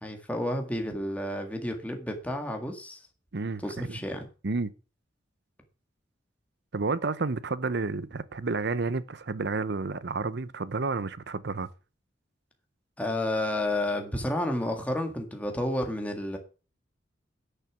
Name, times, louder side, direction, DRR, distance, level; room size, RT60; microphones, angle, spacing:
voice 1, 0.0-3.0 3.6-4.3 13.0-16.4, left 1 dB, 10° left, 1.8 m, -31 dB
voice 2, 3.3-4.0 4.4-4.7 6.7-11.7, right 3 dB, 60° right, 0.7 m, -30 dB
10.5 x 6.7 x 6.2 m
head